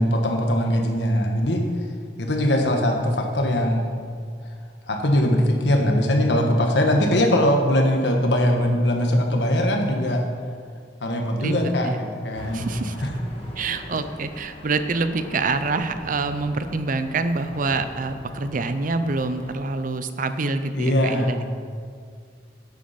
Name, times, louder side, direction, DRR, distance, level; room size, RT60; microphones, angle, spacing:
voice 1, 0.0-1.6 2.2-3.9 4.9-10.2 11.0-12.7 13.0-13.1 13.6-13.7 20.7-21.5, equal, 70° left, 2 dB, 1.5 m, -21 dB
sound 1, 12.3-19.5, equal, 35° left, 1.6 m, -41 dB
voice 2, 12.5-13.0 13.6-21.4, right 3 dB, 50° right, 10 dB, 0.6 m, -26 dB
10.5 x 8.4 x 5.9 m, 2.1 s
head